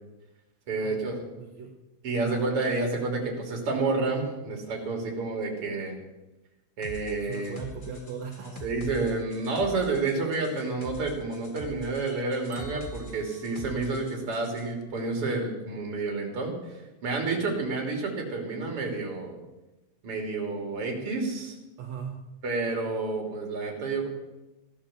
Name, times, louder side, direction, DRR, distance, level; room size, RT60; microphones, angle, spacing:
voice 1, 0.7-1.2 2.0-6.0 6.8-7.5 8.6-16.8 17.0-19.4 20.0-21.6 22.4-24.1, right 3 dB, 50° right, 1 dB, 3.8 m, -29 dB
voice 2, 1.4-1.8 2.2-2.4 4.8-5.0 7.2-8.7 13.7-13.8 17.1-17.4 21.8-22.3, right 6 dB, 70° right, 0 dB, 2.7 m, -40 dB
sound 1, 6.8-14.7, left 2 dB, 55° left, 0.5 m, -44 dB
Bell, 12.5-14.5, equal, 20° right, 5.3 m, -53 dB
16.0 x 11.5 x 7.0 m, 1.0 s
omnidirectional pair, 3.3 m